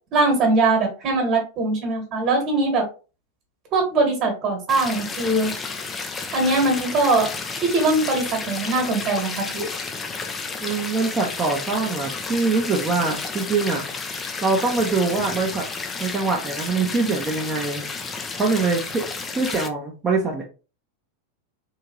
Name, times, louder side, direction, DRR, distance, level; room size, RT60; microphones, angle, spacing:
voice 1, 0.1-2.8 3.7-5.5 6.3-7.3 7.6-9.7, right 2 dB, 35° right, 3 dB, 1.4 m, -21 dB
sound 1, 4.7-19.7, left 4 dB, 20° left, 0.5 m, -32 dB
voice 2, 10.6-13.8 14.4-15.7 16.0-17.8 18.4-19.0 19.3-20.4, right 4 dB, 20° right, -3 dB, 0.7 m, -23 dB
3.7 x 2.7 x 3.0 m, 0.33 s
figure-of-eight pair, 90°, 0 cm